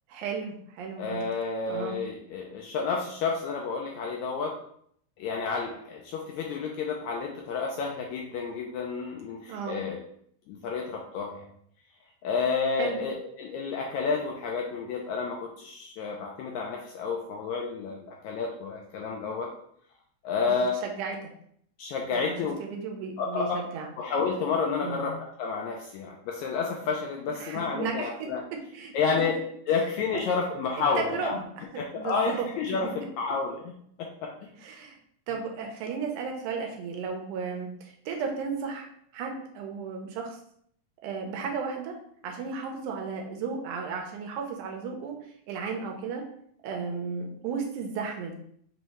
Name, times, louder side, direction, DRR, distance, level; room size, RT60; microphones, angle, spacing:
voice 1, 0.1-1.2 1.7-2.0 9.5-9.8 12.8-13.0 20.4-21.3 22.1-23.9 24.8-25.1 27.4-28.3 28.7-28.9 30.1-30.5 31.0-32.5 34.6-35.0 35.3-40.4 41.0-42.0 42.2-45.1 45.5-46.2 46.6-48.3, right 5 dB, 80° right, 2 dB, 2.1 m, -34 dB
voice 2, 1.0-4.5 5.2-10.0 10.5-11.4 12.2-19.5 20.2-20.7 21.8-22.6 23.2-23.6 24.0-25.1 25.4-28.4 28.9-29.4 29.7-31.4 31.8-33.7 34.0-34.3, left 5 dB, 80° left, 0 dB, 1.7 m, -30 dB
5.6 x 2.6 x 3.1 m, 0.67 s
omnidirectional pair, 3.7 m